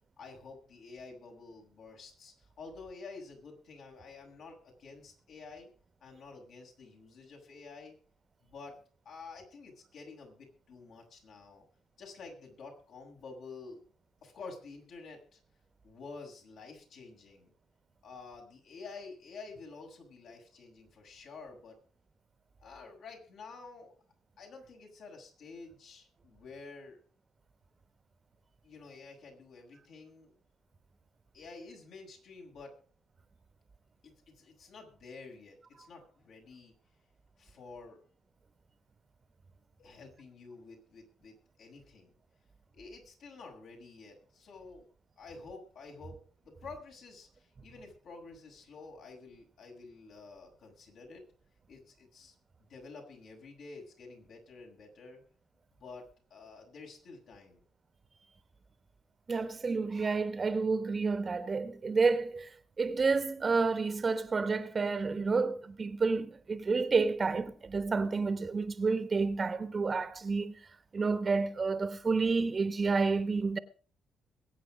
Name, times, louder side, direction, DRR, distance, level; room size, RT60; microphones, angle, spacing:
voice 1, 0.2-5.7 6.0-7.9 8.4-8.8 9.1-11.6 12.0-13.8 14.2-15.4 15.8-17.5 18.0-21.8 22.6-23.9 24.4-27.0 28.6-30.3 31.3-32.7 34.0-36.7 37.4-38.0 39.8-42.1 42.7-44.9 45.2-46.2 46.4-51.2 51.7-52.3 52.7-55.2 55.8-57.6, left 4 dB, 70° left, 6.9 m, -50 dB
voice 2, 59.3-70.6 70.9-73.6, right 4 dB, 35° right, 1.2 m, -30 dB
22.0 x 8.9 x 5.2 m
cardioid pair, 90°, 0 cm